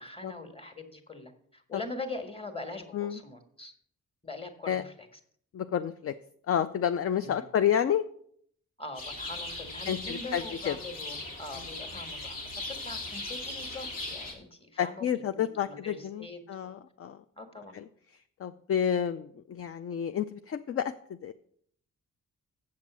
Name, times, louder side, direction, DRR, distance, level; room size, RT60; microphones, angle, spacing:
voice 1, 0.0-3.7 4.2-5.1 7.2-7.4 8.8-16.4 17.4-17.8, left 2 dB, 15° left, 6 dB, 1.6 m, -42 dB
voice 2, 5.5-6.1 6.5-8.0 9.9-10.8 14.8-17.2 17.7-17.8 18.4-20.9 21.2-21.3, left 9 dB, 45° left, 10 dB, 0.4 m, -30 dB
sound 1, 8.9-14.3, left 2 dB, 90° left, 2.2 m, -38 dB
7.6 x 7.1 x 6.1 m, 0.64 s
cardioid pair, 95°, 32 cm